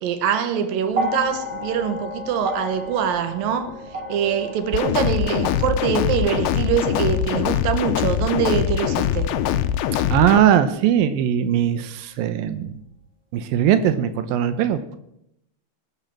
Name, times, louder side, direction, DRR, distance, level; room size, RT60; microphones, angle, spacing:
voice 1, 0.0-3.7 4.1-9.3, right 8 dB, 65° right, 9 dB, 2.5 m, -24 dB
sound 1, 0.9-9.2 10.3-10.4, left 1 dB, 30° right, 0.7 m, -33 dB
sound 2, 4.7-10.4, left 11 dB, 85° left, 2.2 m, -22 dB
voice 2, 10.1-12.8 13.3-14.8, right 10 dB, 90° right, 10 dB, 2.0 m, -19 dB
20.0 x 8.6 x 7.4 m, 0.80 s
omnidirectional pair, 5.4 m